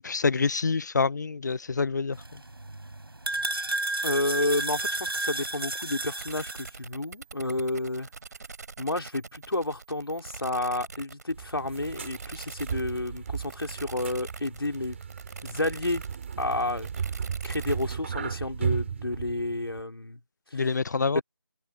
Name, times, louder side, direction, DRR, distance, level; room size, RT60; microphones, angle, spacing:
voice 1, 0.0-2.2 20.5-21.2, left 4 dB, 50° left, 0.8 m, -26 dB
sound 1, 2.1-6.7, right 2 dB, 80° right, 7.6 m, -32 dB
voice 2, 4.0-8.1 8.8-15.0 15.4-16.0 16.4-16.9 17.4-20.2 20.5-20.7 21.1-21.2, left 2 dB, 85° left, 4.0 m, -30 dB
sound 2, 4.4-17.9, right 4 dB, 50° right, 3.6 m, -44 dB
sound 3, 11.3-19.8, right 7 dB, 30° right, 4.3 m, -35 dB
figure-of-eight pair, 160°, 12 cm